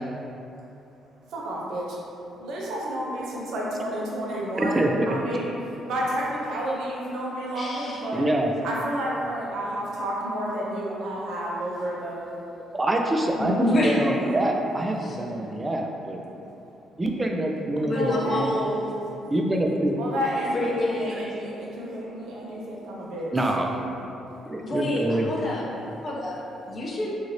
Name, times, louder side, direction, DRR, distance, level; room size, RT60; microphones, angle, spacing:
voice 1, 1.3-1.8 2.4-5.5 5.9-8.2 8.6-12.3 14.0-14.4 17.9-18.4 20.0-23.3, equal, 80° right, -4 dB, 0.6 m, -30 dB
voice 2, 4.6-5.2 8.1-8.5 12.7-16.2 17.0-18.5 19.3-20.0 21.1-21.2 23.3-23.7 24.5-25.3, right 1 dB, 20° right, 1 dB, 0.3 m, -25 dB
voice 3, 7.5-8.0 13.4-14.2 15.0-15.2 17.8-18.8 20.5-21.4 24.6-25.6 26.0-26.3 26.7-27.1, left 1 dB, 40° left, -3 dB, 0.5 m, -27 dB
3.0 x 2.5 x 2.7 m, 2.8 s
cardioid pair, 90°, 0 cm